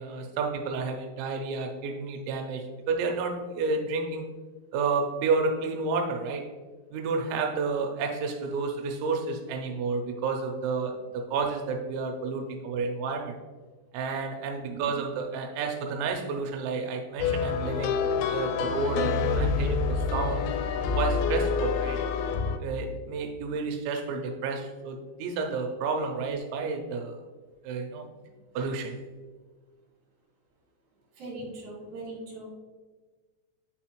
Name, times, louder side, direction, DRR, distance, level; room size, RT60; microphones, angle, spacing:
voice 1, 0.0-4.3 4.7-6.5 6.9-13.4 13.9-20.5 21.0-22.0 22.6-27.2 27.6-28.1 28.5-29.0, right 4 dB, 85° right, 3 dB, 3.0 m, -31 dB
voice 2, 14.5-14.9 31.1-32.5, right 2 dB, 50° right, -4 dB, 2.8 m, -40 dB
sound 1, 17.2-22.6, left 5 dB, 85° left, 2.7 m, -27 dB
8.3 x 4.2 x 2.9 m, 1.4 s
omnidirectional pair, 5.2 m